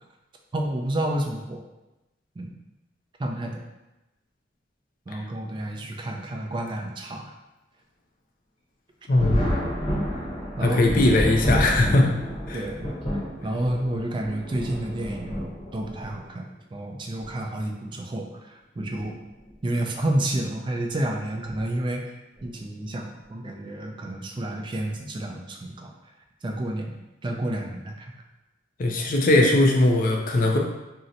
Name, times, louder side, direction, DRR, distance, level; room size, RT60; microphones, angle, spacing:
voice 1, 0.5-1.6 2.4-2.5 3.2-3.6 5.1-7.3 10.6-10.9 12.5-19.2 19.6-22.1 22.4-25.9 26.4-28.1, right 1 dB, 25° right, 1 dB, 0.3 m, -30 dB
voice 2, 9.1-9.5 10.6-12.1 12.5-12.6 28.8-30.6, left 2 dB, 45° left, 1 dB, 0.4 m, -20 dB
Thunder, 9.1-16.2 17.2-17.3 18.8-19.0 19.4-19.5 21.4-21.7 22.4-22.7, equal, 30° left, 0.8 m, -29 dB
2.8 x 2.0 x 3.7 m, 0.99 s
head